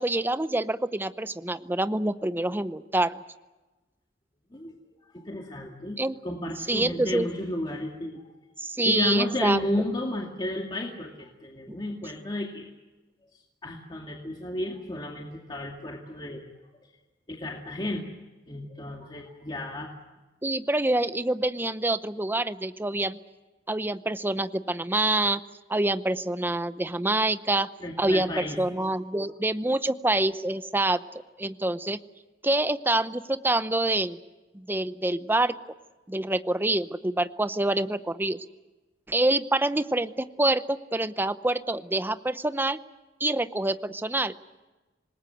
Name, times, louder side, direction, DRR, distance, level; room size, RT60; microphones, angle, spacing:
voice 1, 0.0-3.2 6.0-6.2 6.7-7.3 8.6-9.6 11.7-11.8 20.4-23.2 23.7-25.4 25.7-27.7 28.0-31.0 31.4-32.0 32.4-34.2 34.5-35.5 36.1-38.4 39.1-42.8 43.2-44.3, right 2 dB, 10° right, 12 dB, 0.7 m, -26 dB
voice 2, 5.1-6.0 6.2-8.3 8.8-12.7 13.6-16.4 17.3-18.1 18.5-19.9 27.8-28.6, left 1 dB, 25° left, 0 dB, 2.3 m, -32 dB
27.0 x 20.5 x 8.0 m, 1.2 s
head